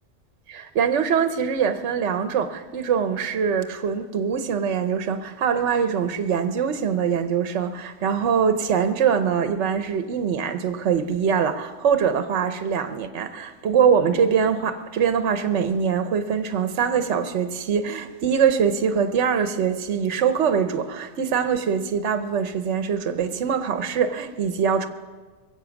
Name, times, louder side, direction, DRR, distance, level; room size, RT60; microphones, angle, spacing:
voice 1, 0.5-24.9, right 7 dB, 70° right, 1.1 m, -23 dB
22.5 x 8.2 x 7.1 m
omnidirectional pair, 1.3 m